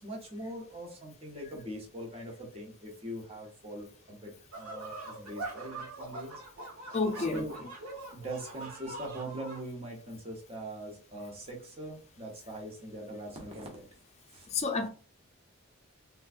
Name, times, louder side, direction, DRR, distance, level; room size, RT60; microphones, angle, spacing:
voice 1, 0.0-6.7 7.2-7.6 8.1-13.9 14.3-14.5, right 1 dB, 25° right, 0.9 m, -42 dB
sound 1, 4.5-9.6, right 2 dB, 75° right, 1.2 m, -43 dB
voice 2, 6.9-7.5 14.5-14.9, left 3 dB, 30° left, 0.5 m, -30 dB
3.4 x 3.0 x 2.5 m
head